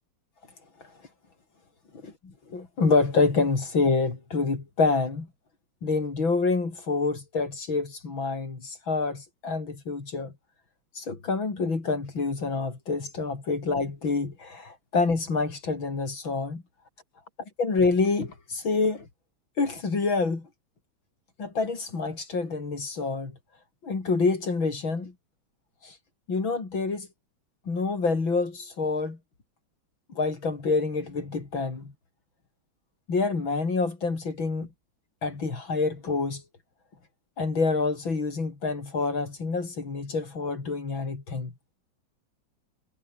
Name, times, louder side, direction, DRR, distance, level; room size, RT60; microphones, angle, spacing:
voice 1, 2.0-5.3 5.8-10.3 10.9-16.6 17.6-19.1 19.6-20.5 21.4-23.3 23.8-25.1 25.8-25.9 26.3-27.1 27.7-29.2 30.1-31.9 33.1-34.7 35.2-36.4 37.4-41.5, left 4 dB, 75° left, 4.8 m, -27 dB
omnidirectional pair, 2.2 m